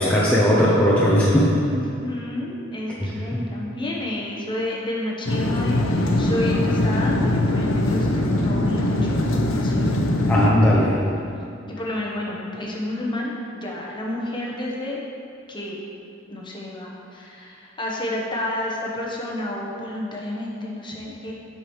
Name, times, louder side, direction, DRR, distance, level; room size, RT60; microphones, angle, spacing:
voice 1, 0.0-1.5 3.0-3.4 10.3-10.9, equal, 5° left, -8 dB, 0.7 m, -18 dB
voice 2, 1.6-10.3 10.7-10.9 11.7-15.0 15.5-15.8 16.3-21.3, left 1 dB, 25° left, -3 dB, 1.0 m, -30 dB
sound 1, 5.3-10.5, left 1 dB, 75° left, 0.7 m, -21 dB
7.7 x 7.0 x 3.2 m, 2.5 s
head